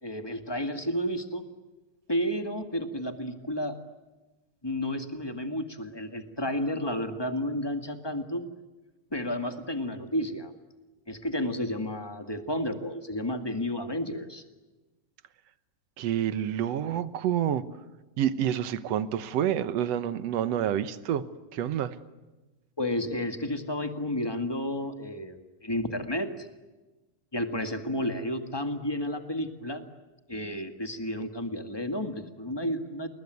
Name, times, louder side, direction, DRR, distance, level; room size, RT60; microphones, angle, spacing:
voice 1, 0.0-1.5 2.1-3.8 4.6-8.5 9.1-10.5 11.1-14.4 22.8-26.5 27.3-29.8 30.3-33.1, left 1 dB, 15° left, 7 dB, 0.8 m, -31 dB
voice 2, 16.0-17.6 18.2-21.3 21.5-22.0, right 10 dB, 65° right, 13 dB, 1.8 m, -28 dB
29.5 x 20.5 x 9.5 m, 1.2 s
omnidirectional pair, 3.9 m